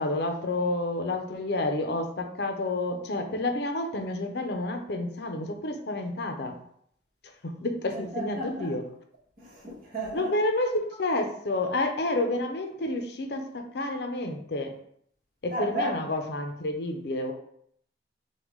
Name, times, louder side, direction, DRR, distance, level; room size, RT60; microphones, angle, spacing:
voice 1, 0.0-6.6 7.2-8.8 10.1-14.7 15.4-17.3, left 2 dB, 60° left, 5 dB, 0.6 m, -29 dB
voice 2, 7.9-8.7 9.4-10.3 15.5-16.0, right 1 dB, 50° right, -4 dB, 1.4 m, -33 dB
5.9 x 2.3 x 3.7 m, 0.67 s
head